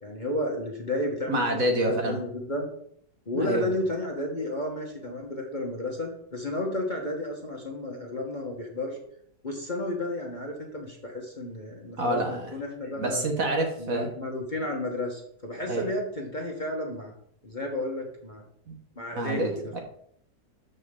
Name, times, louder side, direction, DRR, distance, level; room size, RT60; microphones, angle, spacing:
voice 1, 0.0-2.7 3.3-9.0 9.4-13.3 13.8-17.1 17.4-18.4 19.0-19.8, left 1 dB, 30° left, 0 dB, 1.4 m, -32 dB
voice 2, 1.3-2.2 3.3-3.7 12.0-12.5 13.0-14.1 15.7-15.8 18.7-18.8 19.1-19.8, right 1 dB, 50° right, 3 dB, 1.7 m, -27 dB
13.0 x 5.4 x 3.8 m, 0.68 s
omnidirectional pair, 1.9 m